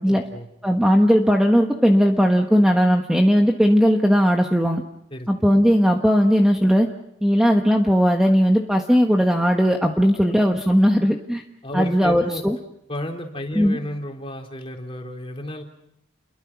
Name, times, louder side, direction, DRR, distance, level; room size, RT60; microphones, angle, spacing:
voice 1, 0.1-0.5 5.1-5.3 10.0-10.3 11.6-12.4 12.9-15.6, left 1 dB, 25° left, 2 dB, 3.6 m, -32 dB
voice 2, 0.6-4.8 5.3-6.9 7.2-11.4 11.7-12.6 13.5-13.8, equal, 5° right, 2 dB, 1.2 m, -18 dB
30.0 x 22.5 x 6.0 m, 0.82 s
head